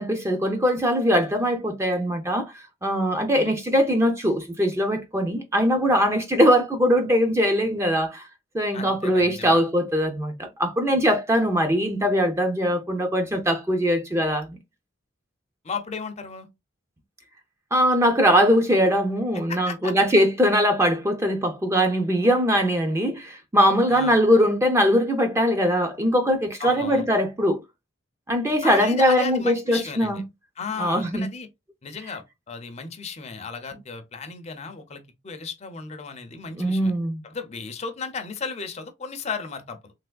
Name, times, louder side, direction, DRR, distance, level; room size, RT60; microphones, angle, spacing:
voice 1, 0.0-2.5 2.8-8.3 8.5-14.6 17.7-27.6 28.3-30.2 30.8-31.3 36.6-37.2, equal, 15° right, 0.5 m, -21 dB
voice 2, 8.7-9.6 15.6-16.5 19.5-19.9 23.9-24.2 26.6-27.1 28.6-30.2 30.6-31.5 31.8-36.9 37.2-39.9, left 5 dB, 35° left, 0.5 m, -34 dB
3.3 x 3.0 x 2.2 m
head